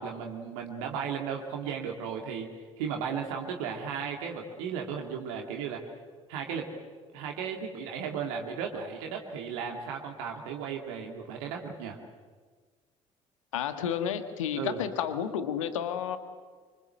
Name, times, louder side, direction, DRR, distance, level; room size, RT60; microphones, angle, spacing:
voice 1, 0.0-2.5 2.8-5.8 6.3-6.7 7.1-12.0 14.5-14.8, right 7 dB, 65° right, 2 dB, 2.5 m, -35 dB
voice 2, 13.5-16.2, left 9 dB, 75° left, 10 dB, 1.6 m, -31 dB
25.0 x 25.0 x 7.8 m, 1.5 s
figure-of-eight pair, 55°, 17 cm